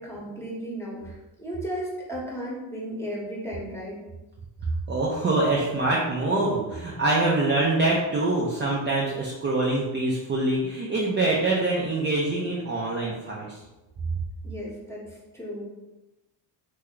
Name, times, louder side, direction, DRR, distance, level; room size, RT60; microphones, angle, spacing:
voice 1, 0.0-4.0 14.4-15.0 15.3-15.6, equal, 5° left, -5 dB, 1.1 m, -34 dB
voice 2, 4.9-13.6, right 2 dB, 25° right, -5 dB, 0.6 m, -25 dB
3.0 x 2.2 x 3.7 m, 1.0 s
cardioid pair, 95°, 47 cm